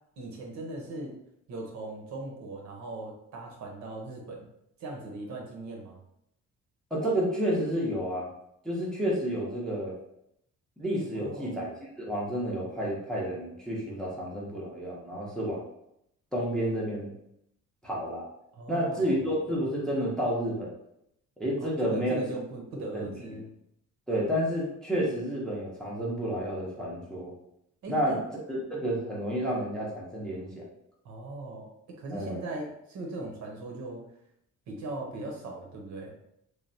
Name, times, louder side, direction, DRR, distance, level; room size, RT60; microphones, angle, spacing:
voice 1, 0.2-1.2 1.5-4.5 4.8-6.0 11.1-11.5 18.5-19.2 21.6-23.5 27.8-28.2 31.0-34.0 34.7-36.1, right 2 dB, 60° right, 0 dB, 0.7 m, -39 dB
voice 2, 6.9-8.3 8.6-9.9 10.8-11.7 12.0-15.6 16.3-17.1 17.8-18.2 18.7-20.7 21.4-22.2 22.9-23.4 24.1-27.3 27.9-28.2 28.5-30.6 32.1-32.4, equal, ahead, -5 dB, 0.5 m, -30 dB
3.1 x 2.2 x 2.6 m, 0.77 s
cardioid pair, 170°, 32 cm